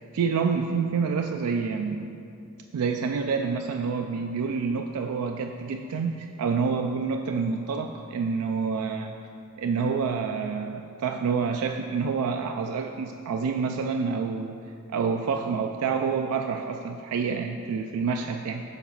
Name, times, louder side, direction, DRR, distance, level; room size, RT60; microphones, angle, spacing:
voice 1, 0.1-2.1 2.7-9.1 9.6-14.6 14.9-18.6, right 5 dB, 85° right, 4 dB, 0.3 m, -28 dB
7.0 x 4.0 x 5.8 m, 2.6 s
head